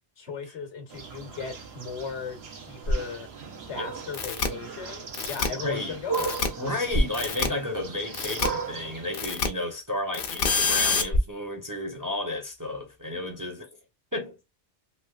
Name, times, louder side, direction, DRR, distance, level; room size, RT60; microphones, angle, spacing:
voice 1, 0.2-3.3 3.7-6.4, left 6 dB, 85° left, 1.3 m, -37 dB
sound 1, 0.9-9.2, right 5 dB, 70° right, 1.0 m, -37 dB
sound 2, 2.4-13.5, equal, 40° left, 0.3 m, -36 dB
sound 3, 4.1-4.5 5.1-5.5 6.1-6.5 7.1-7.5 8.1-8.5 9.1-9.5 10.1-11.0, left 5 dB, 60° left, 0.7 m, -26 dB
voice 2, 5.5-6.0 6.6-13.7 14.1-14.4, left 2 dB, 25° right, 0.5 m, -32 dB
3.2 x 2.9 x 2.3 m
omnidirectional pair, 1.1 m